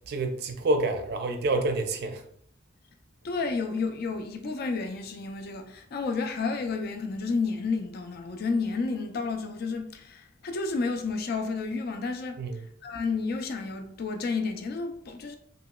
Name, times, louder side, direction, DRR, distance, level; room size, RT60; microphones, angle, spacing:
voice 1, 0.1-2.2 12.4-12.6, right 2 dB, 55° right, 0.4 m, -28 dB
voice 2, 3.2-15.4, left 4 dB, 50° left, 0.4 m, -31 dB
3.0 x 2.9 x 2.2 m
head